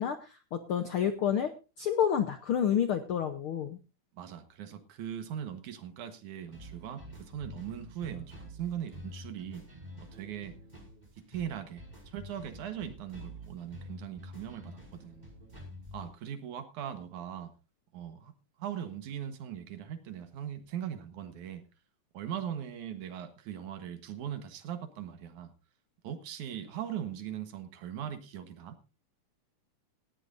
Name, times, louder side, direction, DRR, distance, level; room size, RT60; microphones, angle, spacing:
voice 1, 0.0-1.5 1.8-3.8, left 8 dB, 70° left, 8 dB, 1.2 m, -29 dB
voice 2, 4.1-9.6 10.1-10.6 11.3-15.2 15.9-17.5 17.9-18.3 18.6-21.6 22.1-25.5 26.0-28.8, right 9 dB, 75° right, 9 dB, 2.8 m, -40 dB
sound 1, 6.5-16.1, equal, 10° right, 5.3 m, -48 dB
18.5 x 14.0 x 2.6 m, 0.31 s
omnidirectional pair, 3.6 m